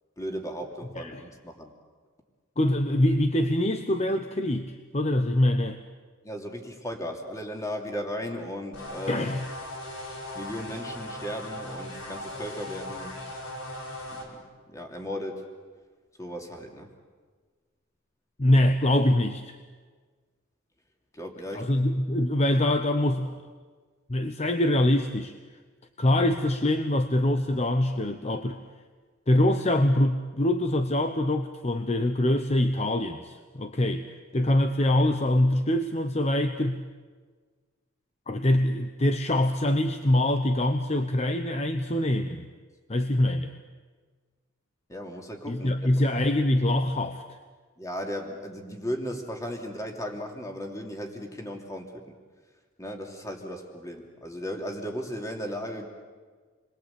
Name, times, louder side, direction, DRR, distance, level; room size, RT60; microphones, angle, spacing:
voice 1, 0.2-1.7 6.2-9.3 10.3-13.1 14.1-14.4 14.7-15.5 16.2-16.9 21.1-21.8 44.9-46.0 47.8-52.0 52.8-55.9, equal, 15° left, 2 dB, 2.9 m, -36 dB
voice 2, 2.6-5.8 9.1-9.4 18.4-19.6 21.5-23.4 24.1-25.3 26.0-28.6 29.3-34.1 34.3-36.8 38.3-42.5 42.9-43.5 45.5-47.2, left 1 dB, 35° left, 7 dB, 1.0 m, -24 dB
sound 1, 8.7-14.3, left 1 dB, 85° left, 4.9 m, -38 dB
29.0 x 22.5 x 8.4 m, 1.5 s
head